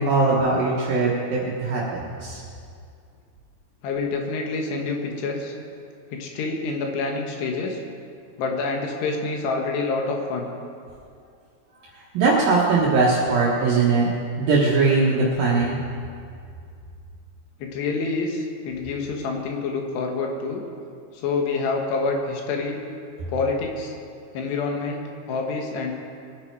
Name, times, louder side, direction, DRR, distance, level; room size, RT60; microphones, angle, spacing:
voice 1, 0.0-2.4 11.9-15.8, right 3 dB, 65° right, -5 dB, 2.9 m, -21 dB
voice 2, 3.8-5.5 6.1-7.8 8.4-10.5 17.6-20.6 21.1-22.8 23.3-23.9 24.3-25.9, left 3 dB, 90° left, 1 dB, 3.6 m, -27 dB
21.5 x 9.9 x 4.7 m, 2.4 s
omnidirectional pair, 4.7 m